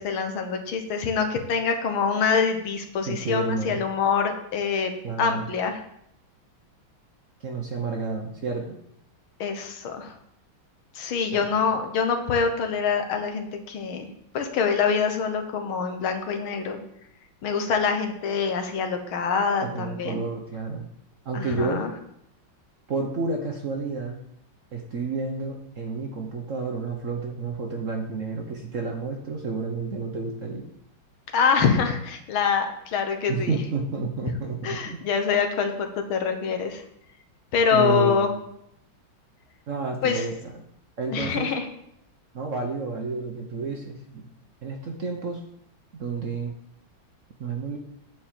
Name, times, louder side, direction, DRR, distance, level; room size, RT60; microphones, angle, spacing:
voice 1, 0.0-4.9 5.2-5.8 9.4-10.1 11.0-14.1 14.3-16.8 17.4-20.2 21.3-21.9 31.3-33.6 34.6-36.8 37.5-38.3 40.0-40.2 41.1-41.7, left 6 dB, 80° left, 6 dB, 2.0 m, -25 dB
voice 2, 3.1-3.8 5.0-5.5 7.4-8.8 11.3-11.5 19.6-20.8 21.2-21.9 22.9-24.2 24.7-30.7 33.3-35.0 37.7-38.3 39.7-40.6 41.0-41.5 42.3-44.3 44.6-45.4 46.0-46.5 47.4-47.8, right 4 dB, 50° right, 3 dB, 1.0 m, -30 dB
9.4 x 4.6 x 7.4 m, 0.75 s
omnidirectional pair, 2.2 m